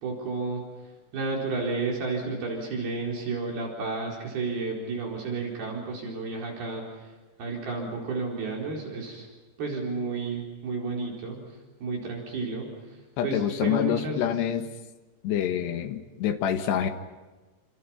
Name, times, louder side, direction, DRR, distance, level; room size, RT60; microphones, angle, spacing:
voice 1, 0.0-0.6 1.1-6.8 7.4-9.3 9.6-11.4 11.8-12.7 13.2-14.4, right 3 dB, 65° right, -1 dB, 6.3 m, -31 dB
voice 2, 13.2-14.7 15.2-16.9, left 9 dB, 85° left, 6 dB, 3.7 m, -26 dB
29.0 x 27.5 x 5.8 m, 1.2 s
omnidirectional pair, 4.7 m